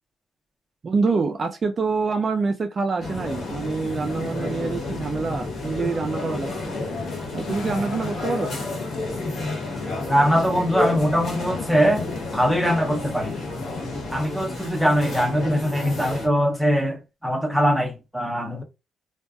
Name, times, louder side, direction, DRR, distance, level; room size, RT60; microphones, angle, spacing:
voice 1, 0.8-6.7 7.3-8.6, right 4 dB, 40° right, 0.3 m, -26 dB
sound 1, 3.0-16.3, left 2 dB, 60° left, 1.1 m, -32 dB
sound 2, 3.2-14.2, left 4 dB, 75° left, 0.8 m, -36 dB
voice 2, 10.1-12.1 12.3-13.4 14.1-18.6, equal, ahead, 0.8 m, -22 dB
2.5 x 2.2 x 2.3 m
cardioid pair, 90°, 0 cm